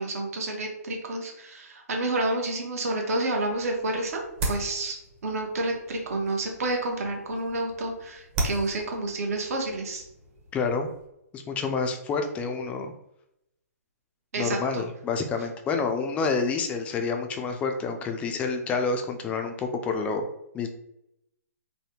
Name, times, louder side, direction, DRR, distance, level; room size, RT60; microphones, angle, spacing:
voice 1, 0.0-4.2 4.5-5.0 5.2-10.0 14.3-14.8, right 2 dB, 65° right, 1 dB, 0.9 m, -29 dB
sound 1, 3.4-11.1, right 2 dB, 35° right, 0.9 m, -38 dB
voice 2, 10.5-10.9 11.3-12.9 14.4-20.3 20.5-20.7, left 4 dB, 15° left, 5 dB, 0.3 m, -28 dB
3.3 x 2.2 x 2.8 m, 0.83 s
hypercardioid pair, 135°, 9 cm